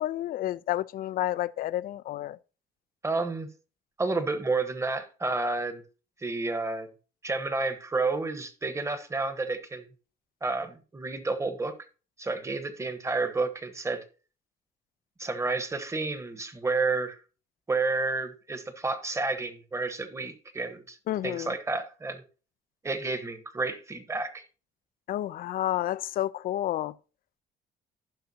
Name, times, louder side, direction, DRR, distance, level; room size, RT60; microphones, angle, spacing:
voice 1, 0.0-2.4 21.1-21.5 25.1-26.9, left 13 dB, 55° left, 0.5 m, -30 dB
voice 2, 3.0-3.5 4.0-5.8 6.2-6.9 7.2-9.9 10.4-11.7 12.2-14.0 15.2-17.2 17.7-21.0 21.2-22.2 22.8-24.4, right 3 dB, 15° right, 1.2 m, -30 dB
15.0 x 5.7 x 2.8 m
cardioid pair, 110°, 17 cm